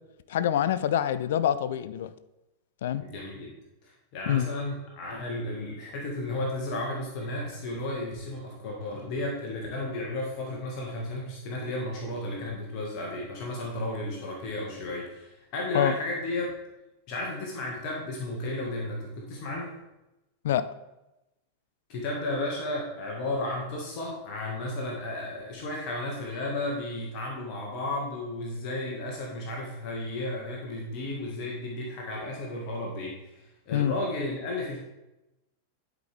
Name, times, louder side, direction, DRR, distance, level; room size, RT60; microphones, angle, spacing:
voice 1, 0.3-2.1 2.8-3.1 4.3-4.5 15.7-15.9 20.4-20.7 33.7-34.0, left 10 dB, 60° left, 15 dB, 0.4 m, -26 dB
voice 2, 3.0-3.5 3.8-16.5 17.1-19.8 21.9-34.8, left 1 dB, 40° left, -1 dB, 1.7 m, -33 dB
11.0 x 5.1 x 3.4 m, 0.97 s
figure-of-eight pair, 90°, 0 cm